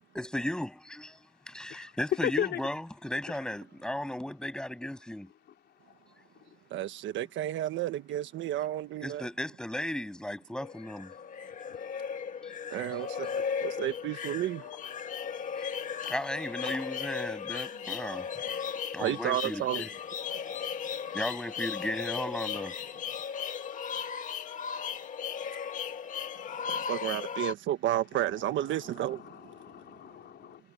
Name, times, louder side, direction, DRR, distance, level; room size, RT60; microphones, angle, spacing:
voice 1, 0.1-1.1 1.5-5.3 9.0-11.1 12.4-12.5 12.9-13.0 16.0-18.3 18.9-19.9 21.1-22.8, left 1 dB, 5° left, 7.5 m, -35 dB
voice 2, 2.2-2.6 28.8-30.6, left 10 dB, 60° left, 3.8 m, -36 dB
voice 3, 6.7-9.3 12.7-14.6 19.0-19.8 26.7-29.2, right 13 dB, 75° right, 1.4 m, -32 dB
sound 1, 10.6-27.5, left 7 dB, 40° left, 1.6 m, -36 dB
cardioid pair, 170°, 20 cm